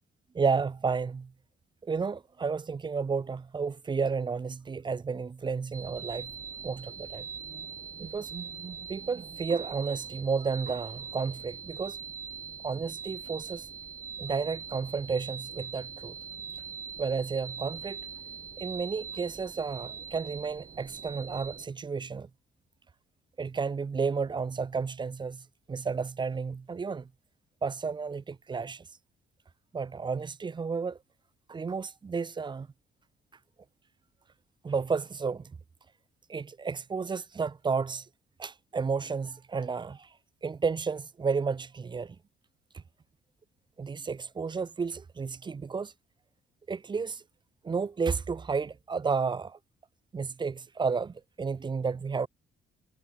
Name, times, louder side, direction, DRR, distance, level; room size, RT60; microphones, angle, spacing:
voice 1, 0.3-1.3 1.8-6.3 6.6-7.3 8.0-8.3 8.9-12.0 12.6-13.7 14.2-16.2 17.0-18.0 18.6-22.3 23.4-25.4 25.7-27.1 27.6-28.8 29.7-31.0 31.5-32.7 34.6-35.5 36.3-38.1 38.4-40.1 40.4-42.2 43.8-45.9 46.7-47.2 47.6-49.6 50.1-52.3, right 5 dB, 25° right, 0.5 m, -32 dB
sound 1, 5.7-21.7, right 6 dB, 45° right, 2.8 m, -42 dB
cardioid pair, 90°, 20 cm